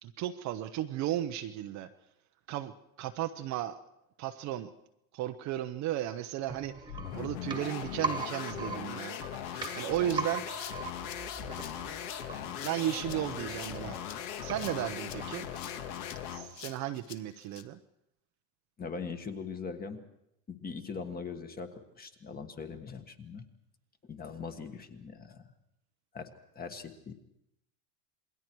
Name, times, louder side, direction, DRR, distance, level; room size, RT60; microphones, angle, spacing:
voice 1, 0.0-1.9 2.5-2.7 3.0-3.8 4.2-4.7 5.1-9.2 9.5-10.4 12.6-14.0 14.4-15.5 16.3-17.8, right 12 dB, 35° right, 7 dB, 0.8 m, -35 dB
sound 1, 6.5-16.2 16.5-16.6, right 3 dB, 10° right, 1.7 m, -41 dB
sound 2, 6.9-16.5, left 9 dB, 65° left, 2.1 m, -39 dB
Rattle (instrument), 9.6-17.6, left 10 dB, 90° left, 1.5 m, -49 dB
voice 2, 18.8-20.0 20.5-21.7 22.0-23.4 24.0-25.4 26.1-26.3 26.5-27.1, left 5 dB, 20° left, 7 dB, 1.6 m, -41 dB
27.5 x 21.0 x 4.7 m, 0.81 s
supercardioid pair, 135°, 49 cm